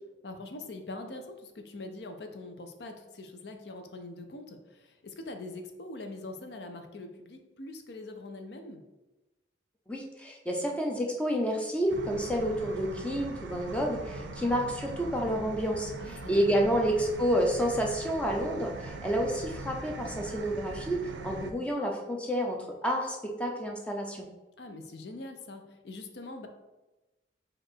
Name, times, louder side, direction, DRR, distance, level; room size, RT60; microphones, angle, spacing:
voice 1, 0.2-8.8 16.0-16.9 24.6-26.5, left 2 dB, 65° left, 6 dB, 0.5 m, -43 dB
voice 2, 9.9-24.3, equal, 5° left, 1 dB, 0.5 m, -29 dB
sound 1, 11.9-21.5, right 3 dB, 70° right, 0.4 m, -41 dB
4.7 x 2.5 x 4.5 m, 1.1 s
head